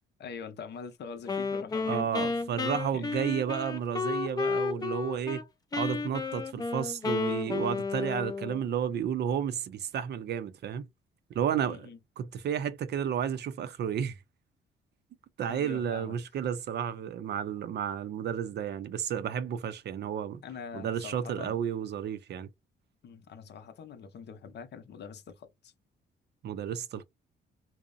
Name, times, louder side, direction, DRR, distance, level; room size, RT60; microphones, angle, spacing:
voice 1, 0.2-2.4 2.9-3.1 11.7-12.0 15.5-16.2 20.4-21.5 23.0-25.7, left 6 dB, 60° left, 0.6 m, -44 dB
Wind instrument woodwind instrument, 1.3-5.4 5.7-8.6, left 4 dB, 20° left, 0.4 m, -32 dB
voice 2, 1.9-5.4 5.7-10.9 11.3-11.9 12.2-14.2 15.4-20.4 20.7-22.5 26.4-27.0, right 8 dB, 60° right, 0.5 m, -32 dB
2.7 x 2.0 x 2.4 m
cardioid pair, 90°, 20 cm